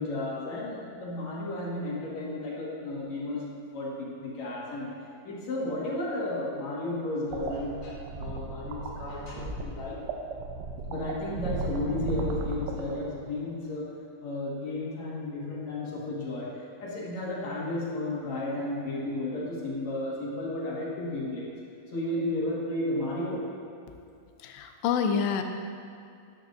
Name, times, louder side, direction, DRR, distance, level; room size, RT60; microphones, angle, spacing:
voice 1, 0.0-3.4 3.7-4.9 5.2-10.0 10.9-13.9 14.2-21.5 21.9-23.4, left 1 dB, 55° left, -5 dB, 2.2 m, -33 dB
sound 1, 7.3-13.4, right 2 dB, 85° right, 3.0 m, -36 dB
voice 2, 24.4-25.4, left 7 dB, 85° left, 5 dB, 2.8 m, -27 dB
12.5 x 10.5 x 2.6 m, 2.5 s
omnidirectional pair, 5.0 m